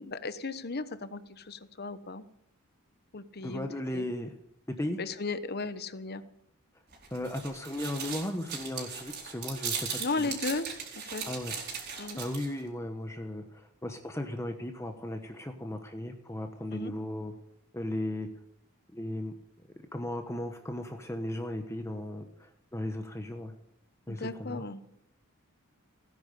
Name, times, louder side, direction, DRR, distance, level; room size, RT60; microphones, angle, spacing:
voice 1, 0.0-2.2 3.1-3.7 3.9-4.0 5.0-6.2 10.0-10.7 11.0-11.2 12.0-12.2 16.7-16.9 24.1-24.8, left 3 dB, 45° left, 13 dB, 1.0 m, -35 dB
voice 2, 3.4-4.3 4.7-5.0 7.1-10.3 11.3-11.5 12.2-17.3 17.7-18.3 18.9-19.3 19.9-23.5 24.1-24.6, left 1 dB, 15° left, 5 dB, 1.1 m, -36 dB
sound 1, 6.9-12.6, right 6 dB, 50° right, 4.5 m, -38 dB
17.5 x 10.5 x 6.8 m, 0.74 s
head